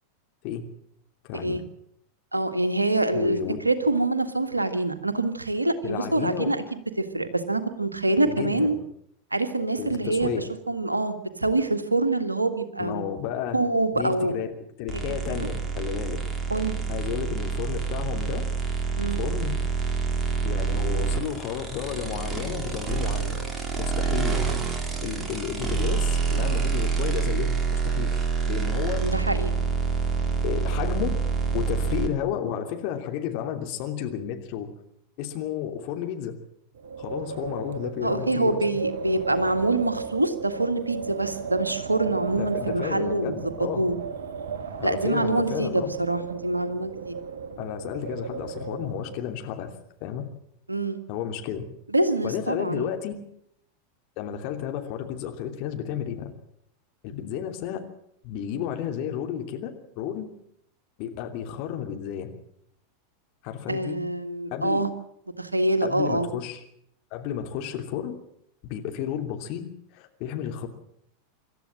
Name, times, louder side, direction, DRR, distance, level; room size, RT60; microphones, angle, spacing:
voice 1, 1.2-1.6 3.1-3.6 5.8-6.5 8.2-8.8 9.8-10.4 12.8-13.6 13.9-14.5 14.8-16.2 16.9-18.4 19.1-19.6 20.4-23.4 23.8-24.5 25.0-28.2 28.5-29.2 30.4-31.2 31.5-34.7 35.2-36.4 37.0-38.6 42.3-43.8 44.8-45.9 47.6-49.7 50.0-50.2 51.1-51.6 52.2-53.2 54.2-56.3 57.0-57.8 58.2-60.3 61.0-62.3 63.4-64.0 64.5-64.8 65.8-66.6 67.1-68.1 68.6-69.7 69.9-70.7, left 9 dB, 45° left, 4 dB, 3.0 m, -32 dB
voice 2, 2.3-3.4 3.6-6.6 7.0-8.8 9.3-10.3 10.7-13.0 13.5-14.4 14.9-15.0 15.3-15.5 16.5-16.8 19.0-19.2 29.0-29.5 38.0-43.9 44.8-47.1 50.7-51.0 51.9-52.9 63.7-64.9 65.4-66.3, right 2 dB, 85° right, 9 dB, 1.8 m, -25 dB
sound 1, 14.9-32.1, right 5 dB, 20° right, 3.3 m, -27 dB
Wind, 36.7-49.4, right 5 dB, 60° right, 1.5 m, -35 dB
26.0 x 13.0 x 7.7 m, 0.72 s
figure-of-eight pair, 85°, 0 cm